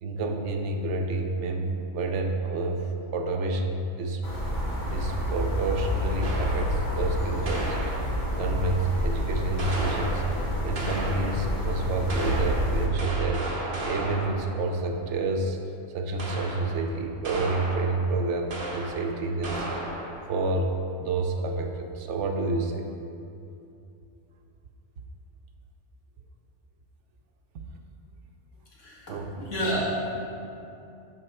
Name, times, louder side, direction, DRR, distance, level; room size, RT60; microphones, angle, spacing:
voice 1, 0.0-4.2 4.8-7.8 8.4-10.2 10.6-13.4 13.8-15.6 15.9-19.7 20.3-20.7 21.0-22.9 29.1-29.3, right 3 dB, 75° right, 4 dB, 1.0 m, -29 dB
sound 1, 4.2-12.9, equal, 40° left, 1.1 m, -29 dB
sound 2, 6.2-6.9 7.5-8.4 9.6-11.5 12.1-14.6 16.2-16.9 17.2-18.1 18.5-19.1 19.4-20.3, right 2 dB, 50° right, 1.2 m, -34 dB
voice 2, 28.8-30.1, equal, 80° left, -5 dB, 2.0 m, -30 dB
11.5 x 4.1 x 4.4 m, 2.6 s
omnidirectional pair, 1.3 m